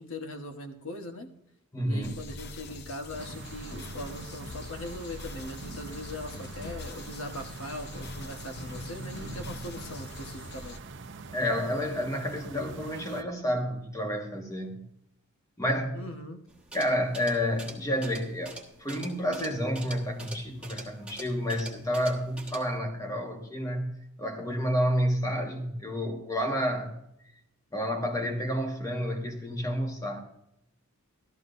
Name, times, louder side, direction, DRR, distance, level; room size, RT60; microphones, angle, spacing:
voice 1, 0.0-1.3 1.8-10.8 15.9-16.4, left 1 dB, 65° left, 5 dB, 1.2 m, -40 dB
voice 2, 1.7-2.2 11.3-14.8 15.6-16.0 16.7-27.0 27.7-30.2, equal, 15° left, 2 dB, 1.5 m, -30 dB
sound 1, 2.0-10.8, left 2 dB, 50° left, 0.7 m, -43 dB
sound 2, 3.2-13.2, right 3 dB, 55° right, 0.7 m, -44 dB
sound 3, 16.5-22.8, right 2 dB, 5° right, 1.4 m, -45 dB
14.0 x 13.0 x 2.6 m, 0.78 s
head